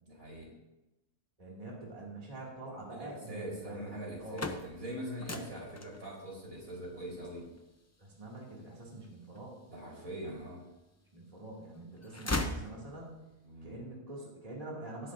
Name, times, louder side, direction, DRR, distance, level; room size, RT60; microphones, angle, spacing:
voice 1, 0.1-0.5 2.9-7.5 9.7-10.6 13.4-13.8, right 1 dB, 75° right, -4 dB, 4.6 m, -42 dB
voice 2, 1.4-3.9 4.2-4.6 5.3-5.6 8.0-9.6 11.1-13.1 13.6-15.1, right 2 dB, 25° right, -4 dB, 2.4 m, -45 dB
sound 1, 4.0-10.0 10.6-11.4 11.7-13.3, left 2 dB, 25° left, 0.3 m, -40 dB
16.5 x 12.0 x 2.6 m, 0.99 s
omnidirectional pair, 1.4 m